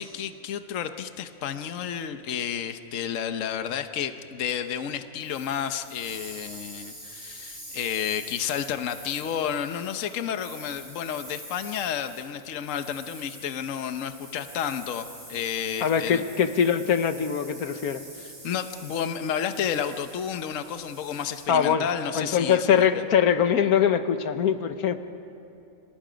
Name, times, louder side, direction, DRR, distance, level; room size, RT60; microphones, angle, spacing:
voice 1, 0.0-16.2 18.2-22.8, left 8 dB, 65° left, 9 dB, 1.2 m, -31 dB
sound 1, 5.2-21.5, right 1 dB, 30° right, 8.4 m, -45 dB
voice 2, 15.8-18.0 21.5-21.8 22.1-25.0, left 8 dB, 85° left, 9 dB, 1.5 m, -22 dB
30.0 x 26.0 x 5.1 m, 2.7 s
omnidirectional pair, 1.5 m